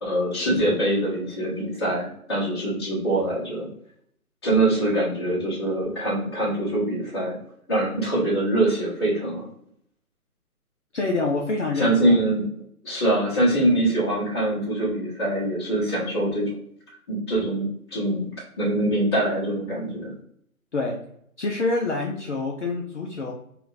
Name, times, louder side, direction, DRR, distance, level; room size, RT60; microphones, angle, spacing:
voice 1, 0.0-3.7 4.4-7.4 7.7-9.5 11.8-12.5 12.8-16.5 17.1-18.3 18.6-20.1, right 1 dB, 20° left, -8 dB, 1.0 m, -24 dB
voice 2, 10.9-12.2 20.7-21.0 21.4-23.3, left 3 dB, 55° left, -1 dB, 0.6 m, -26 dB
3.7 x 2.4 x 2.5 m, 0.67 s
figure-of-eight pair, 155°, 44 cm